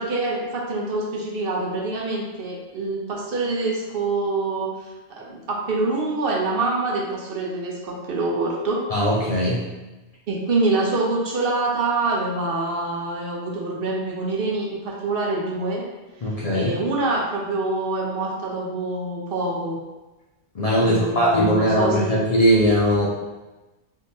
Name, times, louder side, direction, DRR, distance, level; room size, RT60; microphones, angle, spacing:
voice 1, 0.0-4.7 5.1-8.8 10.3-15.8 16.5-19.8 20.8-22.2, right 2 dB, 60° right, -2 dB, 0.8 m, -25 dB
voice 2, 8.9-9.6 16.2-16.7 20.5-23.1, equal, 45° left, -6 dB, 0.5 m, -20 dB
3.6 x 2.7 x 2.6 m, 1.1 s
omnidirectional pair, 1.1 m